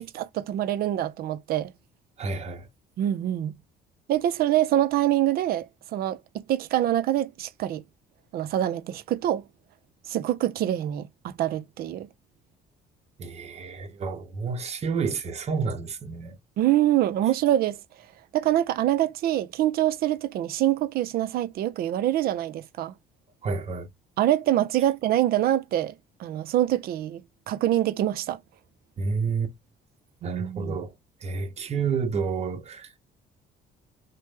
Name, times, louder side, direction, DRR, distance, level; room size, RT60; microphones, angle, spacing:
voice 1, 0.0-1.7 3.0-3.5 4.1-7.8 8.3-9.4 10.1-12.1 16.6-17.8 18.3-22.9 24.2-28.4 30.2-30.8, right 12 dB, 65° right, 0.5 m, -25 dB
voice 2, 2.2-2.7 13.2-16.4 23.4-23.9 29.0-29.5 30.2-30.9 31.2-32.9, right 5 dB, 40° right, 0.8 m, -30 dB
3.1 x 2.1 x 3.2 m
cardioid pair, 110°, 17 cm